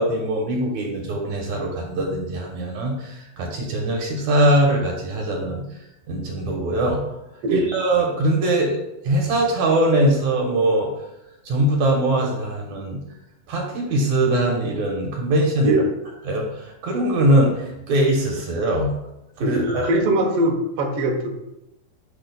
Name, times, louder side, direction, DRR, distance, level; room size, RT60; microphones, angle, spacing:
voice 1, 0.0-5.6 6.1-7.0 7.5-8.8 9.0-10.9 11.5-13.0 13.5-15.8 16.3-18.9 19.4-19.9, right 1 dB, 65° right, 0 dB, 2.1 m, -21 dB
voice 2, 7.4-7.7 15.6-15.9 19.4-21.3, right 1 dB, 80° right, 2 dB, 1.3 m, -21 dB
10.5 x 6.3 x 2.2 m, 0.90 s
omnidirectional pair, 4.2 m